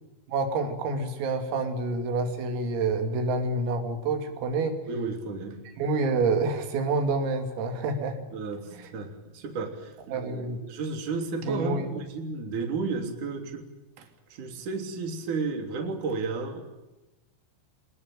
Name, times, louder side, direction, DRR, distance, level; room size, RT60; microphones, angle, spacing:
voice 1, 0.3-4.8 5.8-8.2 8.7-8.9 10.1-10.6 11.4-11.9, right 3 dB, 90° right, 5 dB, 5.4 m, -28 dB
voice 2, 4.9-5.6 8.3-13.7 14.0-16.6, right 4 dB, 40° right, 3 dB, 4.2 m, -33 dB
27.0 x 20.0 x 9.0 m, 1.1 s
omnidirectional pair, 5.9 m